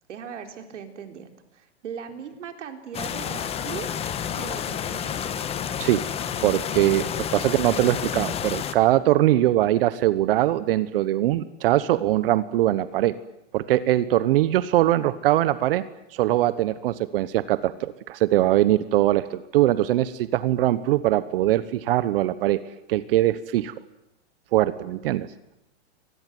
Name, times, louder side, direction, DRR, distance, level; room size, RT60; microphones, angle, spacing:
voice 1, 0.1-3.9 4.3-5.2, right 7 dB, 80° right, 6 dB, 3.9 m, -39 dB
sound 1, 2.9-8.7, left 8 dB, 15° left, 1.3 m, -30 dB
voice 2, 6.4-13.1 13.5-15.8 16.1-22.6 22.9-23.7 24.5-25.3, right 14 dB, 50° right, 15 dB, 1.1 m, -22 dB
24.5 x 19.5 x 9.3 m, 0.85 s
hypercardioid pair, 150°, 36 cm